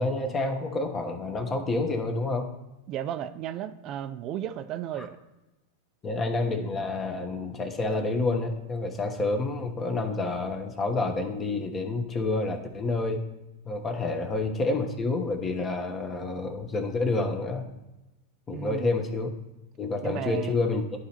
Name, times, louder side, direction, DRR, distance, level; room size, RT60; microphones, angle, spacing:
voice 1, 0.0-2.5 6.0-13.2 13.6-17.6 18.5-19.3 19.8-20.8, left 3 dB, 25° left, 4 dB, 1.1 m, -28 dB
voice 2, 2.9-5.2 18.5-18.9 20.0-20.6, right 10 dB, 45° right, 10 dB, 0.4 m, -34 dB
11.0 x 4.1 x 2.9 m, 1.0 s
hypercardioid pair, 105°, 0 cm